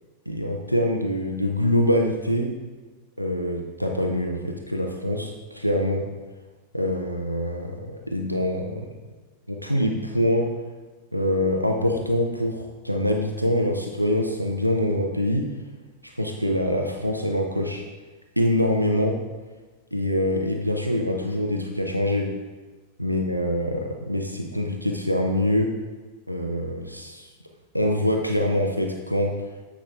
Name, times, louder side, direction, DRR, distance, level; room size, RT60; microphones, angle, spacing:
voice 1, 0.3-2.5 3.2-6.1 6.7-8.9 9.5-10.5 11.1-15.5 16.2-17.8 18.4-19.2 19.9-22.3 23.0-25.7 26.3-27.3 27.7-29.4, left 1 dB, 90° right, 2 dB, 0.6 m, -24 dB
8.4 x 4.9 x 3.5 m, 1.3 s
figure-of-eight pair, 90°, 0 cm